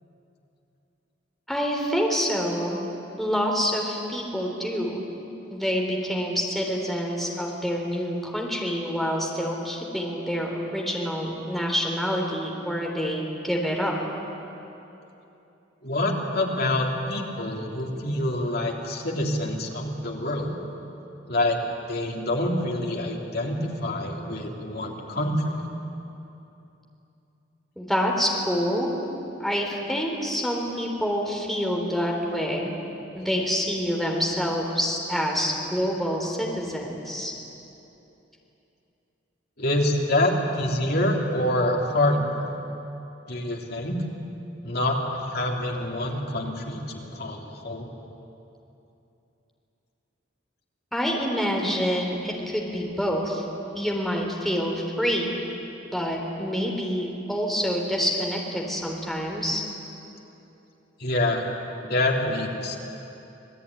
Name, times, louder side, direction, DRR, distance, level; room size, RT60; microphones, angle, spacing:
voice 1, 1.5-2.8 3.2-5.0 5.5-13.9 27.8-28.9 29.4-32.7 33.1-37.3 50.9-53.4 53.7-55.4 55.9-59.6, equal, ahead, -1 dB, 3.8 m, -27 dB
voice 2, 15.8-20.6 21.3-21.6 21.9-25.7 39.6-42.4 43.3-44.0 44.6-47.9 61.0-61.5 61.8-62.8, left 1 dB, 55° left, 0 dB, 3.4 m, -26 dB
26.5 x 18.5 x 9.9 m, 2.9 s
head